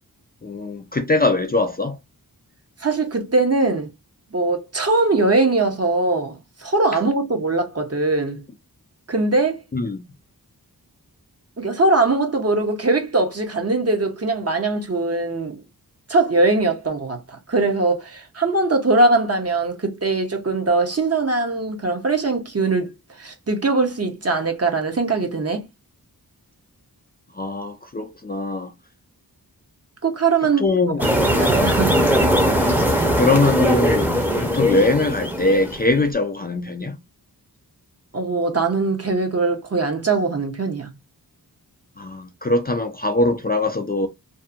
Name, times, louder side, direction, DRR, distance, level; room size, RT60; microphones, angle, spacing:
voice 1, 0.4-2.0 9.7-10.0 27.4-28.7 30.6-31.0 33.1-37.0 42.0-44.1, left 2 dB, 25° left, 0.4 m, -21 dB
voice 2, 2.8-3.9 4.3-8.4 9.1-9.6 11.6-15.6 16.1-25.7 30.0-30.6 31.2-32.0 38.1-40.9, right 3 dB, 40° right, 0.8 m, -21 dB
sound 1, 31.0-35.9, equal, 5° right, 0.7 m, -20 dB
2.7 x 2.5 x 2.4 m
wide cardioid pair, 75°, 38 cm